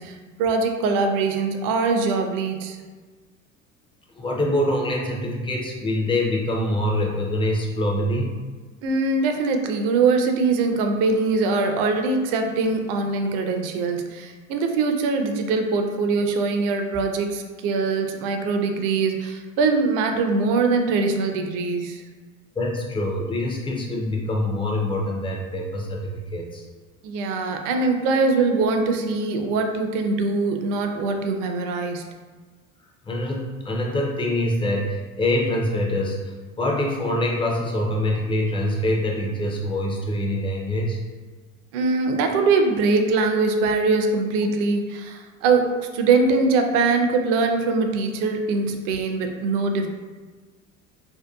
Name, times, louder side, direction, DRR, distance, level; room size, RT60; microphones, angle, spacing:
voice 1, 0.0-2.8 8.8-22.0 27.0-32.1 41.7-49.9, right 4 dB, 55° right, 5 dB, 0.4 m, -22 dB
voice 2, 4.2-8.4 22.6-26.6 33.1-41.0, left 1 dB, 15° left, -1 dB, 0.3 m, -25 dB
2.7 x 2.2 x 2.2 m, 1.4 s
hypercardioid pair, 75°, 41 cm